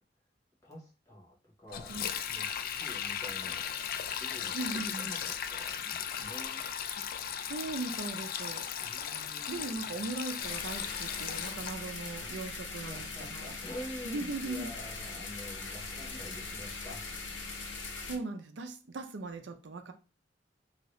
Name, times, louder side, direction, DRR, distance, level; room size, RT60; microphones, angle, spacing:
voice 1, 0.6-2.0 2.3-3.6 4.2-6.6 8.8-9.8 12.2-12.3 12.8-17.1, equal, 20° left, 1.1 m, -47 dB
Sink (filling or washing), 1.7-11.7, left 8 dB, 55° left, 0.3 m, -37 dB
voice 2, 4.5-5.1 7.0-7.1 7.4-8.7 9.5-13.5 14.0-14.7 18.0-19.9, right 3 dB, 70° right, 0.5 m, -39 dB
sound 1, 10.4-18.2, left 4 dB, 85° left, 0.6 m, -41 dB
2.8 x 2.7 x 3.0 m
head